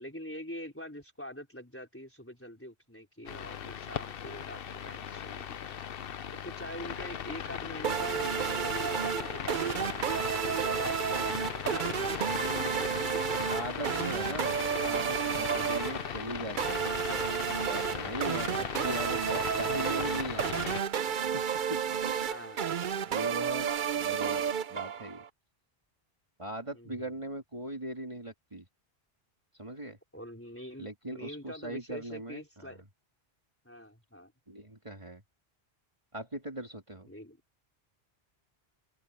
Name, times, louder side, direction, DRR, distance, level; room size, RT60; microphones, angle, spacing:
voice 1, 0.0-5.6 6.4-9.8 10.4-13.9 18.8-19.0 22.2-22.8 26.7-27.1 30.1-32.8 33.6-34.3 37.1-37.4, equal, 10° left, 4.2 m, -45 dB
sound 1, 3.3-20.8, left 8 dB, 65° left, 0.9 m, -38 dB
sound 2, 7.8-25.3, right 8 dB, 55° right, 0.8 m, -31 dB
voice 2, 12.3-12.8 13.5-14.5 14.8-17.0 17.7-20.8 21.3-21.4 21.7-21.8 23.1-23.7 23.9-25.2 26.4-28.7 29.5-30.0 30.8-32.7 34.5-35.2 36.1-37.1, right 1 dB, 30° right, 2.4 m, -40 dB
open air
omnidirectional pair, 1.0 m